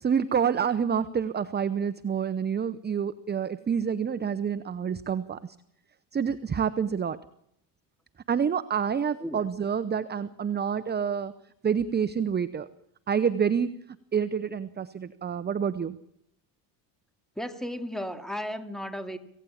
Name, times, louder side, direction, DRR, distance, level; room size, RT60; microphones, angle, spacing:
voice 1, 0.0-5.4 6.1-7.2 8.3-11.3 11.6-12.7 13.1-13.7 14.1-16.0, right 7 dB, 25° right, 13 dB, 0.8 m, -27 dB
voice 2, 17.4-19.2, equal, ahead, 8 dB, 2.5 m, -34 dB
26.0 x 16.5 x 8.7 m, 0.77 s
cardioid pair, 120°, 42 cm